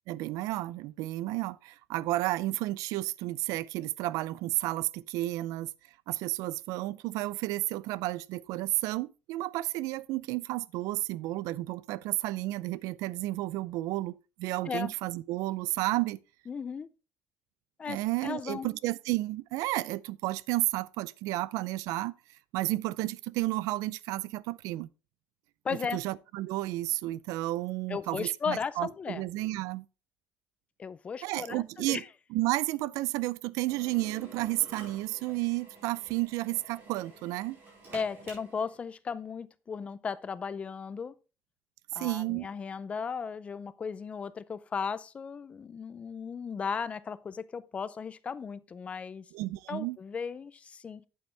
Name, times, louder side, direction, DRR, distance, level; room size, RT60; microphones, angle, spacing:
voice 1, 0.1-5.7 6.1-16.2 17.9-22.1 22.5-24.9 25.7-29.9 31.2-32.0 32.3-37.6 41.9-42.5 49.3-50.0, right 18 dB, 85° right, 0.4 m, -32 dB
voice 2, 16.5-16.9 17.8-18.7 25.6-26.0 27.9-29.2 30.8-32.0 37.9-41.1 42.0-49.3 49.7-51.1, left 6 dB, 20° left, 0.4 m, -36 dB
Drill, 33.7-38.8, right 2 dB, 40° right, 4.5 m, -49 dB
8.6 x 7.9 x 3.2 m
cardioid pair, 175°, 6 cm